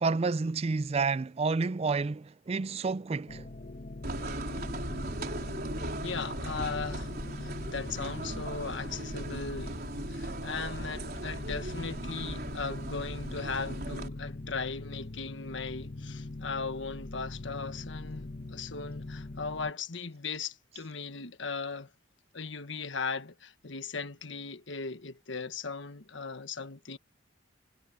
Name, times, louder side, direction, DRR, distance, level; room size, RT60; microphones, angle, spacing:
voice 1, 0.0-3.4, right 4 dB, 35° right, 0.4 m, -29 dB
sound 1, 3.3-19.7, left 2 dB, 45° left, 1.0 m, -42 dB
sound 2, 4.0-14.1, right 1 dB, 55° right, 4.1 m, -38 dB
voice 2, 6.0-7.1 7.4-9.8 10.1-21.9 22.3-27.0, left 4 dB, 80° left, 1.4 m, -38 dB
head